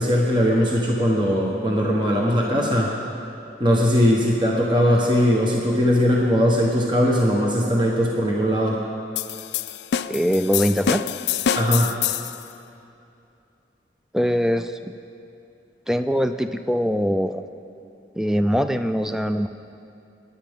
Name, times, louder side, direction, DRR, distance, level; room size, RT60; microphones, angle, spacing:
voice 1, 0.0-2.9 3.6-8.8 11.5-11.9, equal, 25° right, -3 dB, 1.2 m, -20 dB
sound 1, 9.2-12.4, left 9 dB, 70° left, 0.4 m, -26 dB
voice 2, 10.1-11.0 14.1-14.8 15.9-17.4 18.1-19.5, equal, 5° right, 9 dB, 0.4 m, -22 dB
23.0 x 10.5 x 3.7 m, 2.6 s
head